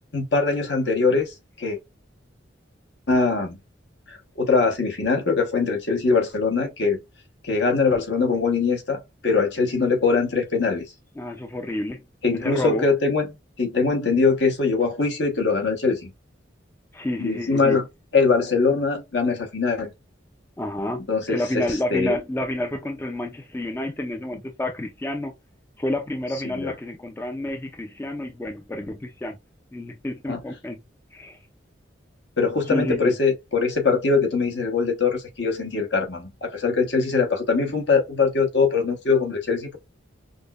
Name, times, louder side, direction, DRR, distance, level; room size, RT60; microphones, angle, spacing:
voice 1, 0.1-1.8 3.1-3.6 4.1-7.0 7.4-10.8 12.2-13.3 13.6-16.1 17.2-17.8 18.1-19.9 21.1-22.1 26.6-26.7 30.3-30.4 32.4-39.8, left 4 dB, 65° left, 1.1 m, -22 dB
voice 2, 11.2-12.0 12.3-12.9 16.9-17.8 20.6-25.3 25.8-29.4 29.7-30.8 31.1-31.4 32.6-33.2, left 1 dB, 10° left, 0.3 m, -29 dB
5.1 x 2.0 x 2.4 m
head